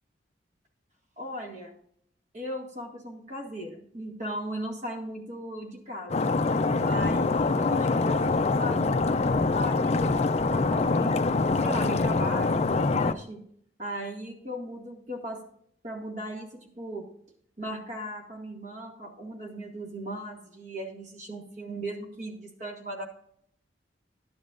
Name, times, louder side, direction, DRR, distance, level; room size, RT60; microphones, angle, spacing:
voice 1, 1.2-1.8 2.3-6.3 6.8-9.0 9.5-13.4 13.8-15.4 15.8-17.1 17.6-23.0, equal, 40° right, 1 dB, 1.9 m, -37 dB
Stream, 6.1-13.1, left 3 dB, 35° left, 0.4 m, -24 dB
11.5 x 10.5 x 2.5 m, 0.65 s
head